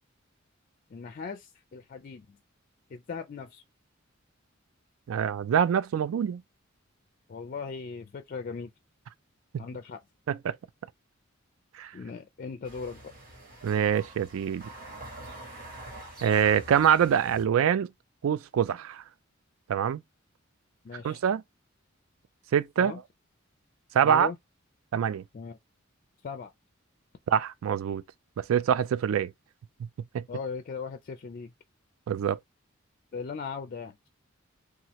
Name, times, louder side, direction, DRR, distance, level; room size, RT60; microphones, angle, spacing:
voice 1, 0.9-2.4 2.9-3.6 7.3-8.7 9.6-10.0 11.9-13.1 20.8-21.2 22.8-23.0 24.0-24.4 25.3-25.6 26.2-26.5 30.3-31.5 33.1-34.0, left 5 dB, 45° left, 0.4 m, -38 dB
voice 2, 5.1-6.4 9.5-9.6 10.3-10.6 11.8-11.9 13.6-14.6 16.2-17.9 18.2-19.0 19.7-20.0 21.0-21.4 22.5-22.9 23.9-24.3 24.9-25.2 27.3-28.0 28.4-29.3 30.1-30.2 32.1-32.4, right 8 dB, 85° right, 0.3 m, -25 dB
sound 1, 12.7-17.5, right 2 dB, 45° right, 1.5 m, -45 dB
2.8 x 2.4 x 3.0 m
head